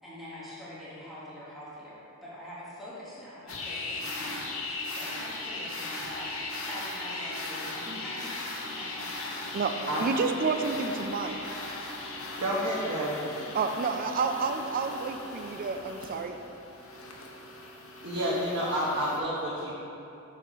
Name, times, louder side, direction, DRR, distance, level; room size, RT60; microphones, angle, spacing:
voice 1, 0.0-4.5 4.9-6.3 6.6-9.6, equal, ahead, -10 dB, 1.2 m, -44 dB
liquid nitrogen dispensing, 3.5-19.2, left 2 dB, 65° left, 0.8 m, -38 dB
voice 2, 10.0-11.4 13.5-16.4, right 4 dB, 40° right, 7 dB, 0.3 m, -29 dB
voice 3, 12.4-13.2 18.0-19.7, equal, 60° right, -7 dB, 1.0 m, -29 dB
6.6 x 4.3 x 5.0 m, 2.9 s
head